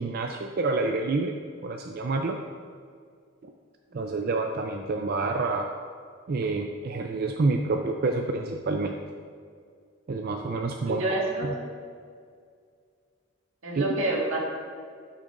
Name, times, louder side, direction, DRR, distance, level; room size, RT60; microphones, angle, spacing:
voice 1, 0.0-1.4 1.6-2.4 3.4-3.5 3.9-5.7 6.3-8.9 10.1-11.0 11.4-11.5 13.8-13.9, right 3 dB, 50° right, 3 dB, 0.4 m, -28 dB
voice 2, 10.8-11.5 13.6-14.4, right 2 dB, 80° right, -2 dB, 1.7 m, -28 dB
12.0 x 6.3 x 2.5 m, 2.1 s
head